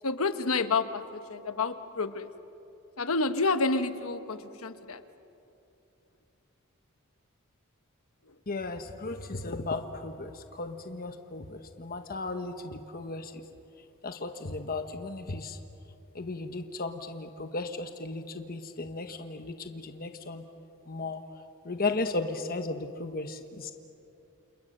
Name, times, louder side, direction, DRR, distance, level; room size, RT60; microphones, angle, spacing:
voice 1, 0.0-2.3 3.0-5.0, left 3 dB, 70° left, 10 dB, 1.2 m, -29 dB
voice 2, 8.5-10.3 10.6-11.4 11.8-13.3 14.0-15.6 16.1-20.4 20.9-21.2 21.7-23.7, left 3 dB, 45° left, 6 dB, 1.2 m, -35 dB
29.5 x 28.0 x 6.7 m, 2.8 s
head